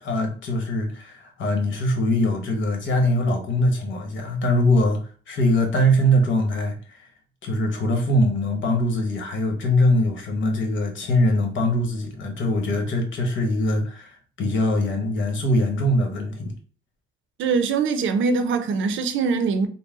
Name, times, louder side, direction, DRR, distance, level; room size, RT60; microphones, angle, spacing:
voice 1, 0.0-7.1 7.4-16.5, left 1 dB, 70° left, 1.2 m, -22 dB
voice 2, 17.4-19.7, right 4 dB, 75° right, 0.6 m, -22 dB
4.0 x 2.1 x 3.6 m
cardioid pair, 90°, 20 cm